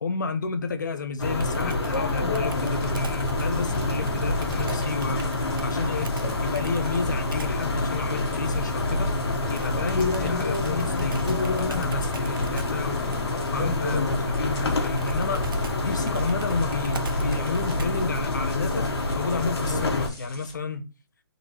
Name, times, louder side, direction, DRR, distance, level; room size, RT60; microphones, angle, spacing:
voice 1, 0.0-6.1 6.4-9.1 9.5-13.2 13.5-15.5 15.8-20.8, left 4 dB, 45° left, 0.7 m, -31 dB
sound 1, 1.2-20.1, left 2 dB, 85° left, 1.2 m, -27 dB
Computer keyboard, 1.4-7.7 9.5-18.1, right 2 dB, 60° right, 0.7 m, -38 dB
sound 2, 2.5-20.5, left 1 dB, 10° left, 1.0 m, -41 dB
3.9 x 2.8 x 4.7 m
hypercardioid pair, 180°, 13 cm